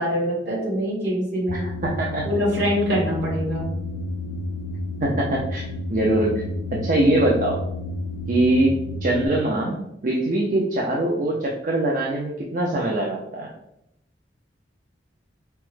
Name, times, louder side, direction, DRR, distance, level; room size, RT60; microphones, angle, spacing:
voice 1, 0.0-1.7 2.2-3.6, equal, 65° right, -5 dB, 1.5 m, -24 dB
sound 1, 1.5-9.3, left 1 dB, 75° left, 0.4 m, -31 dB
voice 2, 1.5-2.3 5.0-6.4 6.7-7.6 8.3-13.5, right 1 dB, 45° right, -1 dB, 0.4 m, -23 dB
4.4 x 2.0 x 3.1 m, 0.83 s
head